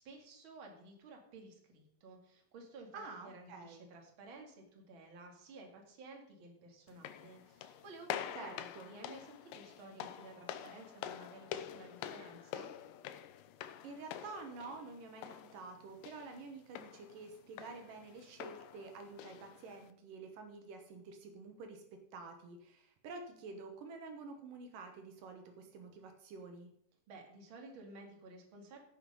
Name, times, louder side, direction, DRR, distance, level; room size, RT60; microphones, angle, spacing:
voice 1, 0.0-12.7 27.1-28.8, right 2 dB, 40° right, 2 dB, 2.5 m, -54 dB
voice 2, 2.9-3.9 8.3-8.9 13.8-21.8 22.1-26.7, right 3 dB, 75° right, 5 dB, 2.7 m, -49 dB
sound 1, 6.9-19.9, left 10 dB, 80° left, 2.3 m, -47 dB
16.5 x 6.1 x 5.4 m, 0.70 s
omnidirectional pair, 3.9 m